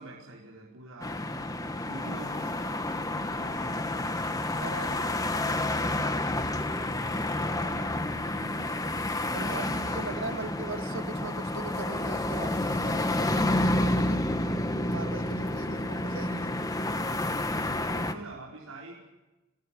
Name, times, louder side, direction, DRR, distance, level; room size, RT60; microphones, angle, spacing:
voice 1, 0.0-3.6 7.3-8.8 9.3-10.5 17.9-18.9, right 2 dB, 85° right, -4 dB, 5.0 m, -46 dB
sound 1, 1.0-18.1, left 1 dB, 15° left, 1.5 m, -30 dB
voice 2, 3.4-3.9 4.5-6.1 9.3-14.2 14.9-16.6, right 3 dB, 65° right, 8 dB, 1.7 m, -41 dB
25.0 x 21.5 x 7.7 m, 1.1 s
head